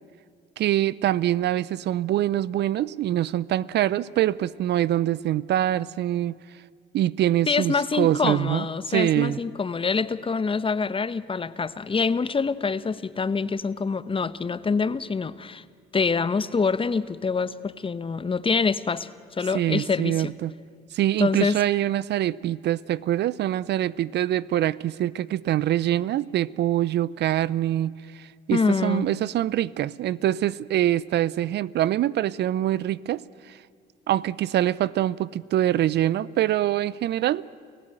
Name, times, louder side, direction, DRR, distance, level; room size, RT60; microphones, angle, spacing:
voice 1, 0.6-6.3 6.9-9.4 19.5-20.5 20.9-33.6 34.1-37.4, right 12 dB, 60° right, 20 dB, 0.6 m, -24 dB
voice 2, 7.5-15.6 15.9-19.1 19.4-20.3 21.2-21.6 28.5-29.1, left 5 dB, 25° left, 16 dB, 0.9 m, -25 dB
29.0 x 15.5 x 9.0 m, 2.1 s
supercardioid pair, 70°, 20 cm